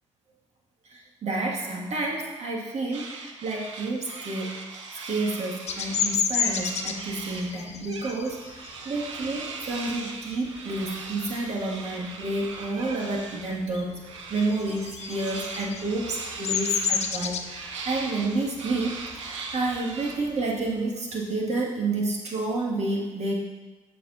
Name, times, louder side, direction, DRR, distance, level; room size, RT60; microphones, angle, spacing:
voice 1, 0.9-4.5 5.0-13.9 14.3-23.4, right 2 dB, 45° right, -2 dB, 2.3 m, -30 dB
sound 1, 2.9-7.5 7.9-13.6 14.0-20.2, right 4 dB, 75° right, 0.8 m, -39 dB
Bird vocalization bird call bird song, 5.7-10.9 11.3-11.6 11.9-13.2 13.4-20.8, left 7 dB, 45° left, 0.8 m, -31 dB
14.5 x 6.9 x 2.8 m, 1.2 s
figure-of-eight pair, 50°, 16 cm